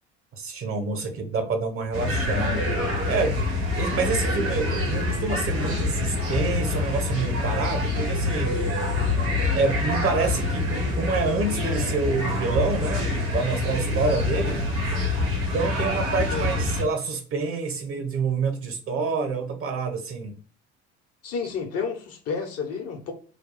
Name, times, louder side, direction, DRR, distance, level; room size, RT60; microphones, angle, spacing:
voice 1, 0.3-2.6 3.1-3.4 3.8-8.6 9.5-14.6 15.5-20.3, right 4 dB, 40° right, 1.0 m, -27 dB
sound 1, 1.9-16.8, left 2 dB, 65° right, 1.5 m, -26 dB
voice 2, 21.2-23.1, left 5 dB, 45° left, 1.0 m, -30 dB
3.2 x 2.2 x 4.1 m
figure-of-eight pair, 55°, 33 cm